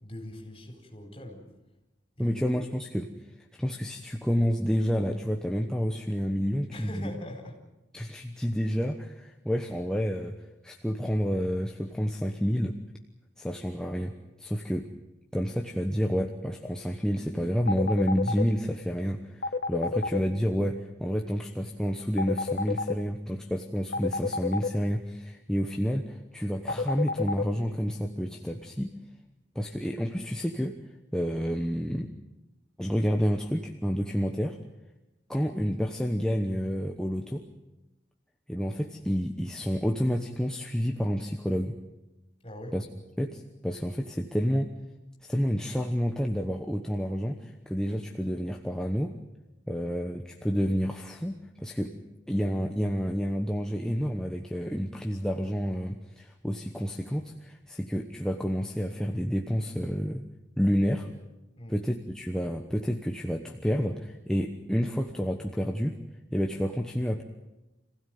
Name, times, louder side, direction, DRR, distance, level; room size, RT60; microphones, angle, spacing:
voice 1, 0.0-1.5 2.1-2.4 6.7-7.5 42.4-42.8 61.6-61.8, left 1 dB, 30° left, 2 dB, 4.5 m, -42 dB
voice 2, 2.2-3.1 3.6-7.1 7.9-10.4 10.6-12.8 13.4-14.9 15.3-28.9 29.5-30.8 31.1-32.1 32.8-34.6 35.3-37.4 38.5-41.8 42.7-42.8 43.2-44.7 45.2-49.1 49.7-52.0 52.3-60.3 60.6-61.1 61.7-66.0 66.3-67.2, equal, 5° left, 2 dB, 1.0 m, -29 dB
sound 1, 17.7-18.4 19.4-20.2 22.2-22.9 23.9-24.7 26.7-27.4, left 4 dB, 55° left, 1.0 m, -28 dB
26.0 x 16.0 x 9.3 m, 1.0 s
head